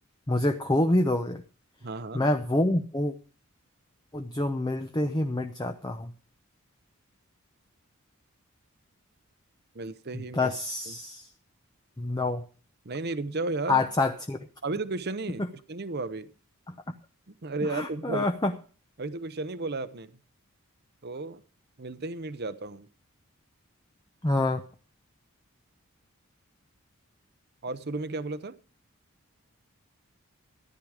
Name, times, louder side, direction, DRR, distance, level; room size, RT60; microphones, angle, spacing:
voice 1, 0.3-1.4 2.1-3.1 4.1-6.1 10.3-11.3 12.0-12.4 13.7-14.4 17.7-18.5 24.2-24.6, left 2 dB, 20° left, 6 dB, 0.7 m, -26 dB
voice 2, 1.8-2.3 9.7-10.5 10.9-11.0 12.8-13.9 14.6-16.3 17.3-18.3 19.0-20.1 21.0-21.4 21.8-22.9 27.6-28.5, right 3 dB, 45° right, 14 dB, 0.8 m, -34 dB
14.0 x 10.5 x 4.9 m, 0.40 s
head